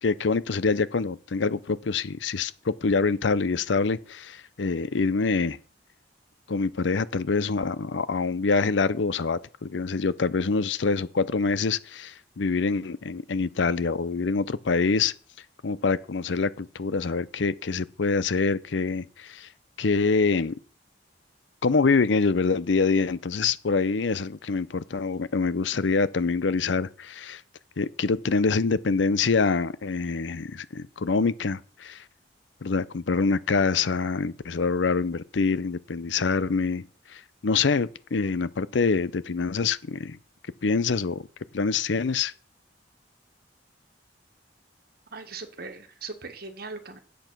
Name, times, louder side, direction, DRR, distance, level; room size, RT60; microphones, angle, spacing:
voice 1, 0.0-5.6 6.5-15.1 15.6-19.5 19.8-20.5 21.6-27.4 27.8-32.0 32.6-40.2 40.6-41.2 41.5-42.3, left 4 dB, 80° left, 0.6 m, -25 dB
voice 2, 45.1-47.0, right 4 dB, 55° right, 1.5 m, -39 dB
9.1 x 7.7 x 6.1 m
head